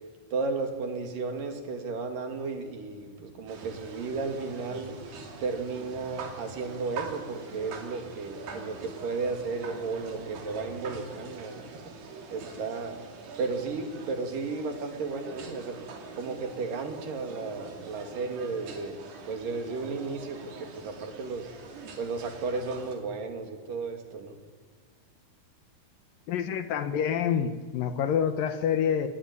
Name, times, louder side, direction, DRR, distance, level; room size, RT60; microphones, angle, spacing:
voice 1, 0.3-5.0 5.4-11.9 12.3-13.0 13.4-15.9 16.2-19.0 19.3-21.5 22.0-24.4, right 4 dB, 60° right, 5 dB, 3.8 m, -34 dB
sound 1, 3.5-23.0, right 4 dB, 85° right, 5.1 m, -44 dB
voice 2, 26.3-29.1, left 8 dB, 70° left, 10 dB, 2.5 m, -27 dB
26.5 x 19.5 x 9.8 m, 1.5 s
omnidirectional pair, 4.6 m